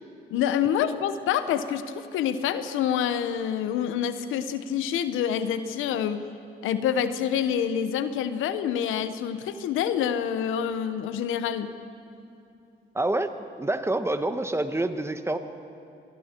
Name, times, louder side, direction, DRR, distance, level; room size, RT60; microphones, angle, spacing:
voice 1, 0.3-6.3 6.6-11.7, left 9 dB, 90° left, 11 dB, 1.0 m, -27 dB
voice 2, 12.9-15.4, right 2 dB, 15° right, 9 dB, 1.2 m, -27 dB
26.0 x 22.5 x 4.5 m, 2.6 s
cardioid pair, 90°, 20 cm